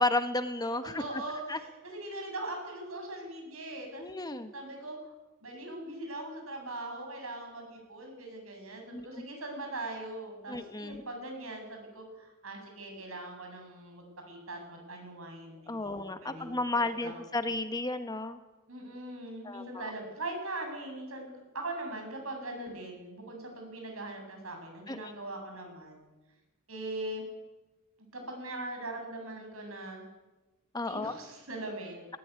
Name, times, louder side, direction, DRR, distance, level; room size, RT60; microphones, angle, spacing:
voice 1, 0.0-1.2 1.5-1.6 4.0-4.5 8.9-9.3 10.5-11.0 15.7-18.4 19.4-19.9 24.9-25.1 30.7-31.1, left 2 dB, 20° left, 9 dB, 1.4 m, -33 dB
voice 2, 1.0-4.0 4.5-5.1 5.4-16.6 17.0-17.2 18.7-21.3 21.5-26.0 26.7-27.2 28.1-30.0 30.8-32.2, right 2 dB, 80° right, 3 dB, 7.7 m, -41 dB
19.5 x 18.5 x 9.6 m, 1.2 s
head